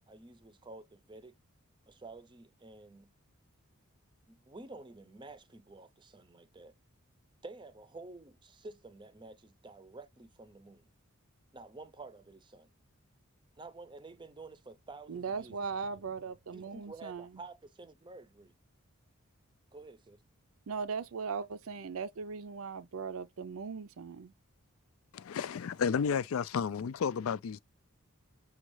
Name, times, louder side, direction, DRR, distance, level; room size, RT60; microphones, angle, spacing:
voice 1, 0.0-1.3 1.9-3.1 4.3-6.7 7.4-10.9 11.5-12.7 13.6-16.0 16.5-18.5 19.7-20.2, right 3 dB, 20° right, 0.6 m, -50 dB
voice 2, 15.1-17.3 20.7-24.3, right 5 dB, 70° right, 0.5 m, -38 dB
voice 3, 25.1-27.6, left 6 dB, 70° left, 0.4 m, -32 dB
6.3 x 2.4 x 3.0 m
head